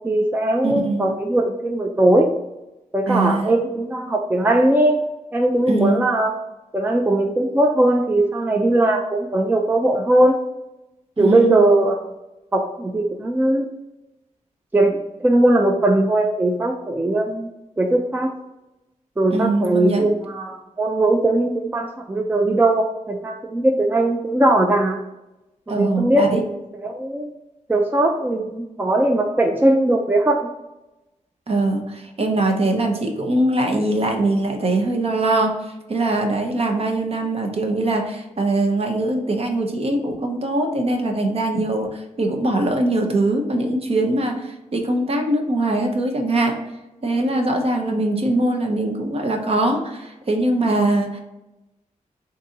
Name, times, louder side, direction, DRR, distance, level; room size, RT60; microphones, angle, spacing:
voice 1, 0.0-2.3 2.9-5.0 5.3-6.3 6.7-10.3 11.2-12.1 12.5-13.6 14.7-17.5 17.8-18.3 19.2-25.0 25.7-26.6 26.8-27.3 27.7-30.4, right 1 dB, 15° right, 2 dB, 0.4 m, -19 dB
voice 2, 0.6-1.1 3.1-3.5 5.7-6.0 11.2-11.6 19.3-20.1 25.7-26.4 31.5-46.6 47.0-51.2, right 2 dB, 50° right, 3 dB, 0.7 m, -22 dB
4.0 x 2.7 x 3.7 m, 0.97 s
wide cardioid pair, 120°, 13 cm